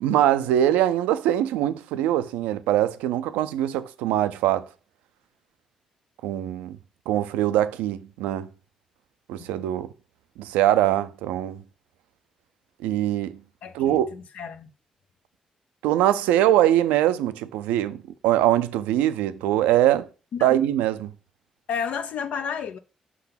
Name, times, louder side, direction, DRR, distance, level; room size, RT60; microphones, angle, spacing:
voice 1, 0.0-4.7 6.2-6.8 7.1-8.5 9.3-9.9 10.4-11.6 12.8-13.4 13.7-14.1 15.8-18.0 18.2-20.1 20.4-21.1, right 12 dB, 90° right, 0.4 m, -22 dB
voice 2, 13.6-14.7 20.3-20.5 21.7-22.8, left 7 dB, 75° left, 0.6 m, -32 dB
5.7 x 3.6 x 5.7 m
supercardioid pair, 50°, 2 cm